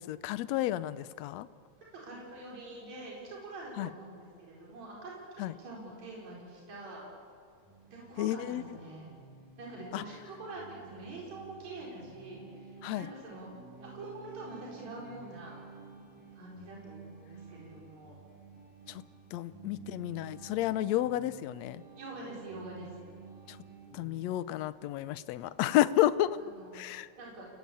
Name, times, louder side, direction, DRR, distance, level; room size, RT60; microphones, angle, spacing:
voice 1, 0.0-1.5 3.8-3.9 5.4-5.5 8.2-8.6 9.9-10.0 12.8-13.1 18.9-19.0 19.3-21.8 23.5-23.6 23.9-26.4 26.7-27.1, left 13 dB, 70° left, 14 dB, 1.9 m, -31 dB
voice 2, 1.9-7.0 7.9-9.1 9.6-13.5 13.8-15.6 16.3-18.2 20.8-21.0 22.0-22.9 26.4-26.8 27.2-27.5, right 2 dB, 65° right, -4 dB, 5.9 m, -45 dB
sound 1, 7.6-24.2, right 5 dB, 5° right, 7.6 m, -52 dB
30.0 x 19.5 x 8.6 m, 2.3 s
omnidirectional pair, 3.4 m